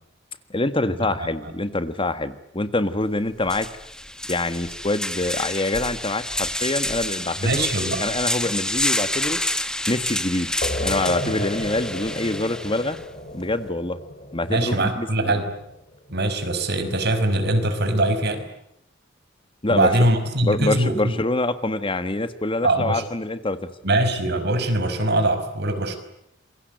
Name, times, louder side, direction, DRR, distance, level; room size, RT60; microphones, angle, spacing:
voice 1, 0.5-3.7 4.3-7.7 8.0-9.4 9.9-10.5 10.8-13.0 13.3-14.0 14.3-15.1 19.6-19.9 20.4-23.6, left 2 dB, 30° left, 11 dB, 1.6 m, -25 dB
sound 1, 3.0-3.1 3.4-13.0, left 1 dB, 5° left, 1.3 m, -28 dB
voice 2, 7.4-8.1 11.2-11.4 14.5-15.5 16.1-18.5 19.7-21.2 22.6-23.0 23.8-26.0, right 1 dB, 60° right, 9 dB, 5.3 m, -22 dB
sound 2, 10.6-16.0, left 1 dB, 45° left, 5.1 m, -33 dB
27.5 x 23.0 x 9.3 m, 0.79 s
head